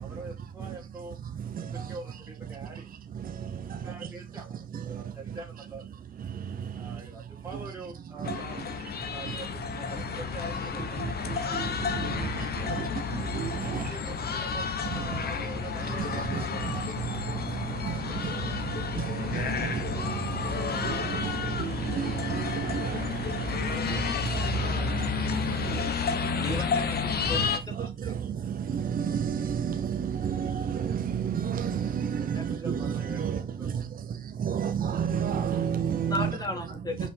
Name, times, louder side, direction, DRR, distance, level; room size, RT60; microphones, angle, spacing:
voice 1, 0.0-1.2 1.6-2.9 3.7-5.9 6.7-12.8 13.6-17.1 18.8-19.0 19.8-19.9 32.2-33.7, right 3 dB, 15° right, 2.2 m, -45 dB
voice 2, 1.3-2.0 3.1-4.1 4.7-5.4 6.2-7.0 8.2-8.4 9.3-9.4 11.0-13.9 14.9-15.2 15.9-26.6 27.2-36.4 37.0-37.1, right 8 dB, 45° right, 0.9 m, -32 dB
sound 1, 8.2-27.6, left 6 dB, 50° left, 1.2 m, -31 dB
voice 3, 25.7-28.2 32.3-32.4 36.1-37.1, left 2 dB, 20° left, 2.2 m, -36 dB
5.4 x 5.0 x 4.0 m
cardioid pair, 90°, 20 cm